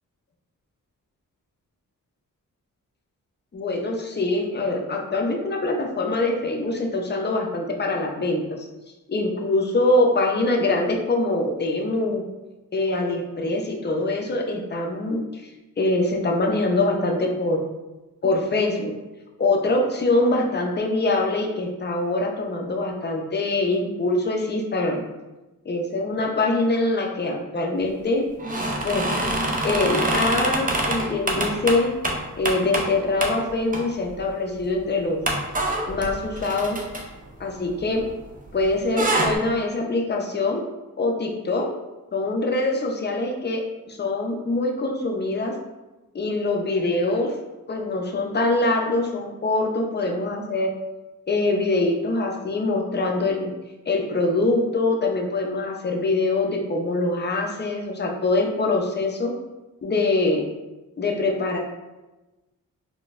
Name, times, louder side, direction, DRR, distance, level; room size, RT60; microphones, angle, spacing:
voice 1, 3.5-8.7 9.1-12.2 12.7-15.5 15.8-17.6 18.2-18.9 19.4-25.0 25.7-28.2 28.8-29.0 29.6-31.9 32.4-35.2 35.9-36.8 37.4-38.0 38.5-40.6 41.0-41.7 42.1-43.6 43.9-45.5 46.1-47.3 47.7-50.7 51.3-53.5 53.9-59.3 59.8-60.4 61.0-61.6, left 2 dB, 30° left, 1 dB, 0.5 m, -24 dB
sound 1, 28.4-32.9 33.2-33.4 33.7-34.2 34.6-34.7 35.2-38.3 38.6-39.3, right 1 dB, 25° right, 0.5 m, -25 dB
3.9 x 2.2 x 2.4 m, 1.1 s
cardioid pair, 65°, 35 cm